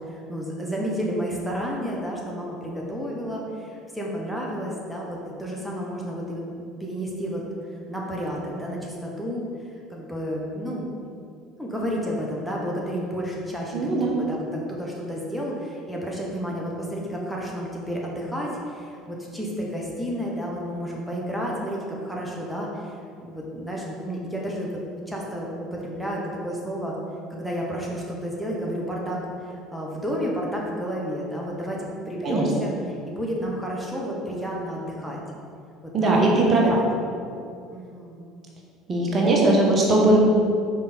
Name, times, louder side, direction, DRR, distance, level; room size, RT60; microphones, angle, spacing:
voice 1, 0.0-7.4 7.9-9.4 9.9-10.9 11.6-23.0 23.2-24.7 25.1-26.9 27.3-29.2 29.7-32.7 33.1-35.2 36.0-36.2 36.6-36.8 37.7-38.2, equal, ahead, -4 dB, 1.2 m, -31 dB
voice 2, 13.7-14.1 32.2-32.5 35.9-36.8 38.9-40.2, right 2 dB, 35° right, -2 dB, 1.3 m, -19 dB
5.3 x 5.1 x 4.4 m, 2.4 s
figure-of-eight pair, 65°, 0 cm